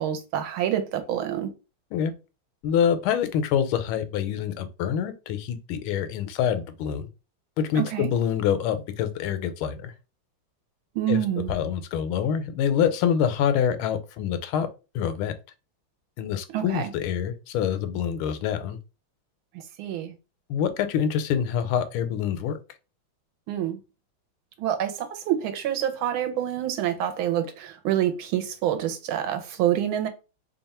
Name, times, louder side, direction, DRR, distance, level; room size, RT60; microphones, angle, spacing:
voice 1, 0.0-1.5 7.8-8.1 10.9-11.5 16.5-16.9 19.8-20.1 23.5-23.8 24.6-30.1, right 11 dB, 80° right, 1.5 m, -27 dB
voice 2, 2.6-7.1 7.6-9.9 11.1-11.2 11.5-14.7 14.9-15.3 16.2-18.8 20.5-22.6, left 8 dB, 85° left, 1.5 m, -26 dB
3.5 x 2.3 x 4.1 m
omnidirectional pair, 2.3 m